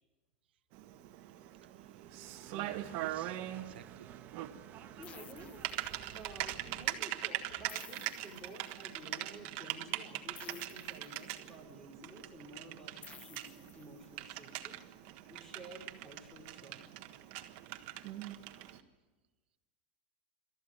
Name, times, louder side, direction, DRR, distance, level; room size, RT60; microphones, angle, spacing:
Typing, 0.7-18.8, right 14 dB, 50° right, 1.4 m, -42 dB
voice 1, 1.6-2.2 2.5-4.1, right 11 dB, 90° right, 11 dB, 1.1 m, -55 dB
sound 1, 1.8-7.0, right 9 dB, 35° right, 1.3 m, -54 dB
sound 2, 5.0-6.4 7.7-9.0 10.3-11.7 13.0-14.4, left 8 dB, 25° left, 0.9 m, -56 dB
voice 2, 5.0-5.6 6.1-14.8 15.3-17.1, equal, 5° left, 4 dB, 5.1 m, -52 dB
27.0 x 14.0 x 9.4 m, 1.2 s
supercardioid pair, 145°, 6 cm